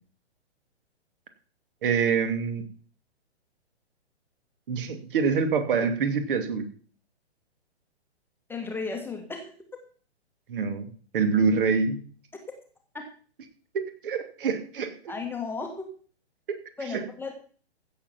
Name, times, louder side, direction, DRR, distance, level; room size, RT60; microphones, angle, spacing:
voice 1, 1.8-2.6 4.7-6.7 10.5-10.9 11.1-12.0 14.0-14.9 16.9-17.0, right 5 dB, 50° right, 7 dB, 2.6 m, -25 dB
voice 2, 8.5-9.5 12.9-13.1 15.1-15.9 16.8-17.3, left 4 dB, 5° left, 4 dB, 1.4 m, -34 dB
15.5 x 7.2 x 6.0 m, 0.44 s
figure-of-eight pair, 120°, 34 cm